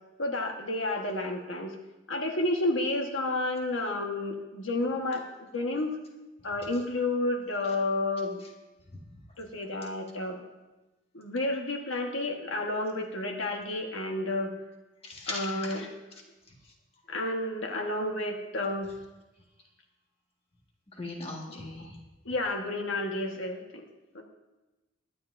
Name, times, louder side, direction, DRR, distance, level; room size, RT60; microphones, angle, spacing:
voice 1, 0.2-1.7 2.1-5.2 5.5-5.9 6.4-8.4 9.4-10.4 11.1-14.5 15.3-15.9 17.1-18.9 21.5-21.6 22.2-23.6 24.1-24.2, left 2 dB, 85° left, 2 dB, 1.4 m, -30 dB
voice 2, 15.0-15.8 20.9-21.9, left 2 dB, 30° left, -1 dB, 1.7 m, -39 dB
22.5 x 10.0 x 2.6 m, 1.1 s
head